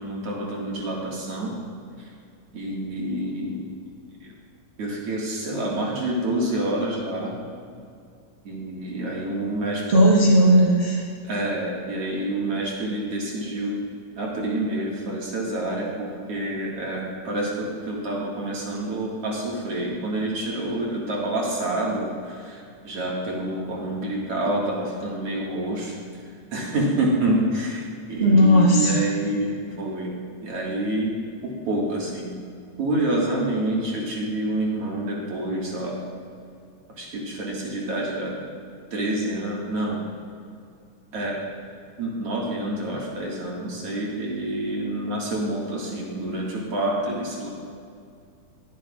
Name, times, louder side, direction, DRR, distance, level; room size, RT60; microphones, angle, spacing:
voice 1, 0.0-1.5 2.5-3.6 4.8-7.3 8.4-9.8 11.2-13.8 14.2-25.9 26.5-29.5 29.8-30.1 30.4-31.1 31.4-32.3 32.8-36.0 37.0-38.3 38.9-40.0 41.1-41.4 42.0-47.5, right 1 dB, 50° right, -4 dB, 2.6 m, -27 dB
voice 2, 9.9-11.0 28.2-29.0, equal, 75° right, -6 dB, 0.5 m, -16 dB
21.5 x 8.3 x 2.4 m, 2.3 s
omnidirectional pair, 3.6 m